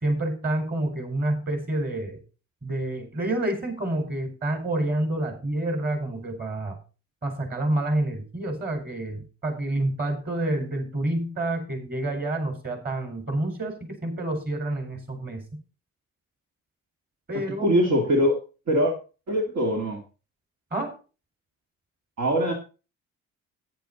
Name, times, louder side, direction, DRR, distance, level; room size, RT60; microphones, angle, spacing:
voice 1, 0.0-2.2 2.6-6.8 7.2-15.6 17.3-17.7 20.7-21.0, right 1 dB, 30° right, 5 dB, 4.6 m, -28 dB
voice 2, 17.3-18.3 18.7-18.9 19.3-20.0 22.2-22.5, equal, 60° right, 1 dB, 2.3 m, -22 dB
10.0 x 9.8 x 4.1 m, 0.33 s
cardioid pair, 90°, 30 cm